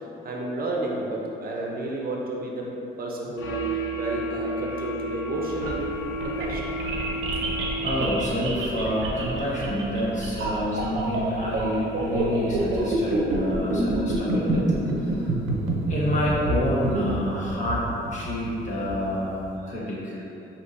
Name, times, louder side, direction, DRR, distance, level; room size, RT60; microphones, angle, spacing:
voice 1, 0.2-2.7 3.0-3.7 3.9-5.9 6.2-6.7 10.4-10.5, right 2 dB, 50° right, -2 dB, 0.6 m, -31 dB
sound 1, 3.4-8.2, right 1 dB, 80° left, 0.6 m, -32 dB
sound 2, 5.4-19.5, right 2 dB, 90° right, 0.6 m, -28 dB
voice 2, 7.8-14.7 15.0-15.3 15.9-20.2, equal, 35° left, -7 dB, 1.3 m, -27 dB
5.8 x 2.8 x 2.6 m, 3.0 s
cardioid pair, 90°, 20 cm